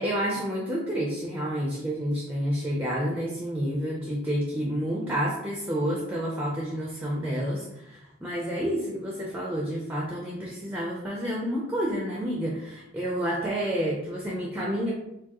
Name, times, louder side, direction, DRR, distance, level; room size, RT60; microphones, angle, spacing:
voice 1, 0.0-14.9, equal, 10° right, -3 dB, 0.5 m, -29 dB
4.5 x 2.3 x 2.9 m, 0.89 s
head